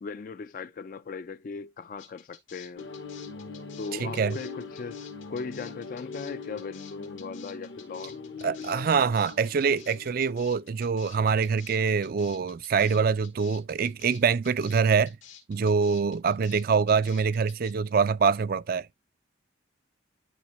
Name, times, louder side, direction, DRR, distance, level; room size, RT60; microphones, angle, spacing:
voice 1, 0.0-2.8 3.8-5.0 5.3-8.8, left 4 dB, 45° left, 0.3 m, -38 dB
sound 1, 2.0-17.7, left 9 dB, 90° left, 2.1 m, -51 dB
sound 2, 2.8-11.0, left 4 dB, 60° left, 0.9 m, -42 dB
voice 2, 4.0-4.4 8.4-15.2 15.5-18.9, right 5 dB, 50° right, 0.4 m, -25 dB
11.0 x 4.1 x 3.0 m
head